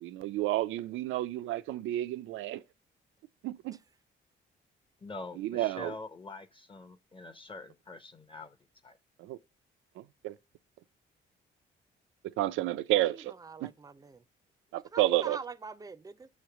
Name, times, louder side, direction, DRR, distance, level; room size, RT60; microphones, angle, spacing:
voice 1, 0.0-2.6 3.4-3.8 5.4-5.9 9.2-9.4 10.0-10.3 12.2-13.3 13.6-13.7 14.7-15.4, right 15 dB, 90° right, 0.4 m, -31 dB
voice 2, 5.0-8.6 8.8-9.0, left 2 dB, 25° left, 0.6 m, -45 dB
voice 3, 12.9-14.2 14.7-16.3, right 4 dB, 20° right, 0.5 m, -44 dB
6.1 x 3.2 x 5.8 m
cardioid pair, 90°, 20 cm